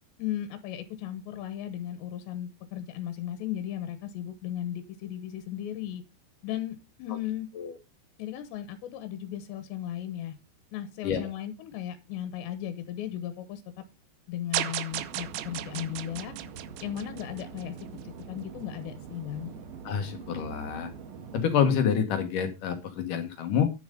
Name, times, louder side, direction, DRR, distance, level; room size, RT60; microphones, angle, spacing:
voice 1, 0.2-6.0 6.4-7.5 8.2-10.4 10.7-13.8 14.3-16.3 16.8-19.5, left 11 dB, 80° left, 10 dB, 3.2 m, -36 dB
sound 1, 14.5-17.8, right 15 dB, 85° right, 3.1 m, -35 dB
sound 2, 14.9-21.5, right 6 dB, 65° right, 3.0 m, -44 dB
voice 2, 19.8-20.9 21.3-23.7, left 7 dB, 60° left, 7 dB, 2.4 m, -27 dB
10.5 x 7.2 x 5.2 m, 0.26 s
omnidirectional pair, 5.1 m